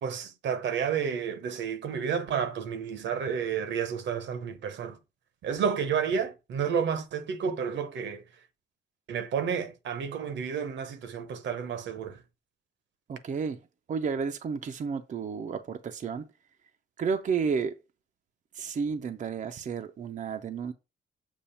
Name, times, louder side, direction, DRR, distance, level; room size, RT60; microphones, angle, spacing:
voice 1, 0.0-5.0 5.4-8.2 9.1-12.2, right 7 dB, 65° right, 0.9 m, -31 dB
voice 2, 13.1-13.6 13.9-16.2 17.0-17.8 18.5-20.7, right 5 dB, 40° right, 0.6 m, -31 dB
7.0 x 2.4 x 5.5 m
cardioid pair, 90°, 20 cm